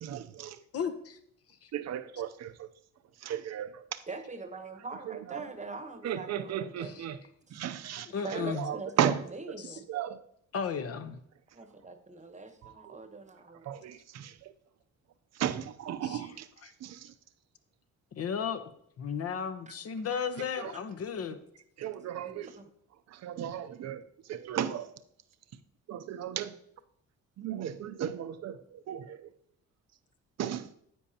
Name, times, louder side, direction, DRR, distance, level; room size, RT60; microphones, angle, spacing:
voice 1, 0.0-0.6 1.7-2.7 3.2-4.0 5.3-5.4 6.0-7.2 7.5-9.2 9.9-10.2 12.6-13.0 13.7-14.5 15.4-16.5 16.8-17.1 20.6-20.7 21.8-22.5 23.1-24.0 24.3-24.9 25.9-26.6 27.4-29.3 30.4-30.6, right 10 dB, 60° right, 0.6 m, -35 dB
voice 2, 0.7-1.2 1.6-1.7 6.8-7.0 8.1-8.7 9.6-9.8 10.5-11.2 16.0-16.3 16.6-16.7 18.1-18.7 19.0-21.4, left 6 dB, 55° left, 0.9 m, -34 dB
voice 3, 4.1-7.0 8.2-9.9 11.5-13.7 19.7-19.8 20.7-20.8 22.2-22.7, right 3 dB, 25° right, 1.0 m, -43 dB
10.0 x 8.5 x 2.9 m
cardioid pair, 90°, 30 cm